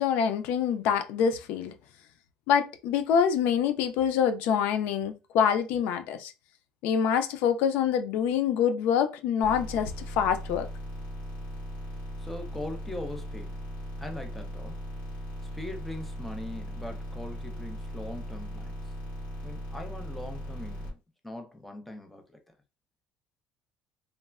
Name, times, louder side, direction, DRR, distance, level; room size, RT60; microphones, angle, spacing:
voice 1, 0.0-1.7 2.5-6.3 6.8-10.7, left 8 dB, 75° left, 0.4 m, -26 dB
sound 1, 9.4-20.9, equal, 60° left, 1.5 m, -38 dB
voice 2, 12.2-13.6 14.0-14.8 15.5-18.7 19.4-21.0 21.2-22.4, left 1 dB, 5° left, 0.5 m, -40 dB
3.2 x 2.0 x 2.3 m
cardioid pair, 140°, 3 cm